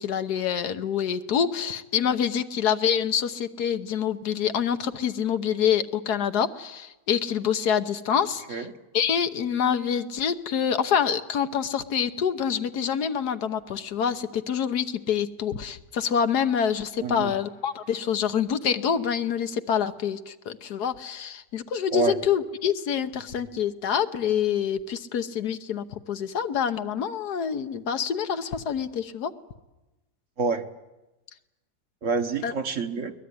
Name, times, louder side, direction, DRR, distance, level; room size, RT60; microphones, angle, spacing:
voice 1, 0.0-8.7 8.9-29.3 32.4-32.5, left 8 dB, 75° left, 9 dB, 1.6 m, -26 dB
voice 2, 17.0-17.3 21.9-22.1 30.4-30.6 32.0-33.1, right 5 dB, 50° right, 7 dB, 1.5 m, -27 dB
22.0 x 20.0 x 9.7 m, 1.0 s
omnidirectional pair, 1.7 m